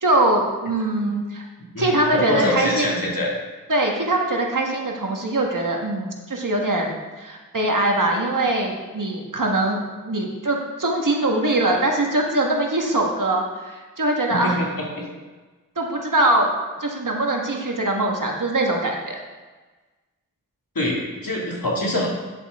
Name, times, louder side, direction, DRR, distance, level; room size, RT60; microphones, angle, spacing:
voice 1, 0.0-1.4 1.8-2.9 3.7-14.6 15.8-16.5 16.8-19.2, right 2 dB, 65° right, 0 dB, 1.6 m, -22 dB
voice 2, 1.7-3.3 14.3-14.7 15.0-15.1 20.7-22.1, left 1 dB, 80° left, -3 dB, 2.3 m, -24 dB
9.9 x 8.3 x 3.6 m, 1.3 s
wide cardioid pair, 45°, 34 cm